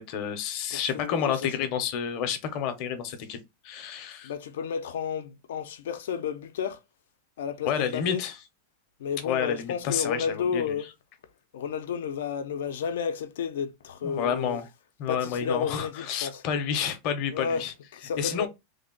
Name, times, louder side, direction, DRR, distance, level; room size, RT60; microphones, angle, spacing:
voice 1, 0.0-3.4 3.6-4.3 7.6-8.3 9.2-10.6 14.0-14.7 15.0-17.7 18.2-18.5, left 8 dB, 35° left, 0.6 m, -30 dB
voice 2, 0.7-1.7 4.2-6.8 7.4-8.2 9.0-10.9 11.5-14.6 15.1-16.4 17.3-17.6 17.9-18.5, left 7 dB, 85° left, 0.5 m, -32 dB
3.3 x 2.1 x 3.7 m
supercardioid pair, 175°, 0 cm